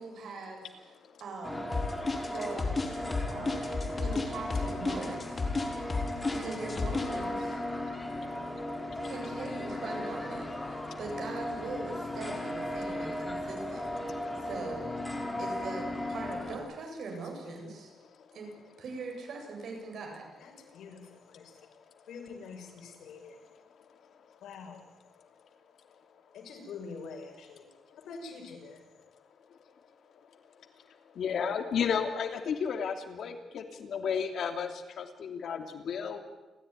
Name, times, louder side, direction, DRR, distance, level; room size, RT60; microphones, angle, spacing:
voice 1, 0.0-0.9 1.2-1.7 2.2-3.0 3.3-3.7 4.0-5.4 6.3-7.6 9.0-13.8 14.1-14.9 15.4-17.9 18.3-18.5 18.8-20.2, right 3 dB, 70° right, 2 dB, 7.9 m, -41 dB
voice 2, 0.8-1.2 2.0-2.5 3.0-3.2 4.1-5.4 6.7-7.6 8.4-8.5 9.0-10.5 11.1-11.2 11.7-12.6 13.8-15.8 16.6-17.0 17.3-17.5 18.0-18.4 18.7-19.0 19.4-19.6 20.0-20.2 22.2-23.3 24.3-24.4 25.2-25.3 26.8-26.9 28.0-28.1 30.3-30.4 30.9-36.2, left 7 dB, 70° left, 6 dB, 3.0 m, -38 dB
sound 1, 1.4-16.6, left 1 dB, 10° left, 4.2 m, -36 dB
sound 2, 1.7-7.1, left 3 dB, 30° left, 3.7 m, -31 dB
voice 3, 20.4-21.5 22.1-23.4 24.4-24.8 26.3-27.6 28.0-28.8, left 4 dB, 85° left, 2 dB, 6.0 m, -45 dB
29.5 x 14.5 x 9.9 m, 1.1 s
cardioid pair, 115°, 0 cm